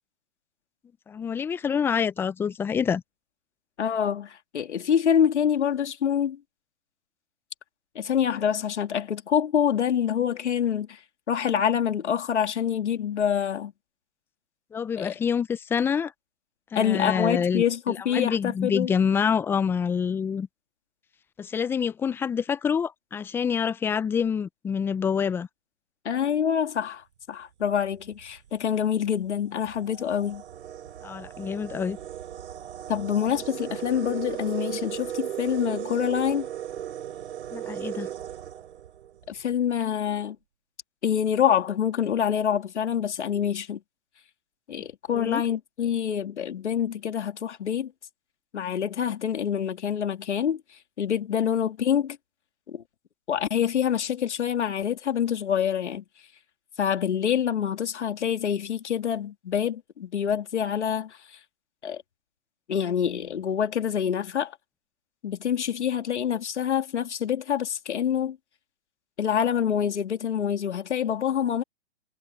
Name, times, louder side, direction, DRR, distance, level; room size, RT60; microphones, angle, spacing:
voice 1, 1.1-3.0 14.7-16.1 16.7-20.5 21.4-25.5 31.0-32.0 37.5-38.1 45.1-45.4, left 7 dB, 5° left, 0.4 m, -27 dB
voice 2, 3.8-6.4 7.9-11.0 11.3-13.7 15.0-15.1 16.7-18.9 26.0-30.4 32.9-36.5 39.3-40.4 41.0-43.8 44.7-47.9 48.5-50.6 51.0-52.2 52.7-52.8 53.3-56.0 56.8-61.2 61.8-62.0 62.7-64.6 65.2-68.4 69.2-71.6, left 8 dB, 70° left, 3.0 m, -26 dB
sound 1, 27.9-28.2 29.0-29.1 29.6-39.3, right 11 dB, 65° right, 3.8 m, -36 dB
hypercardioid pair, 125°, 36 cm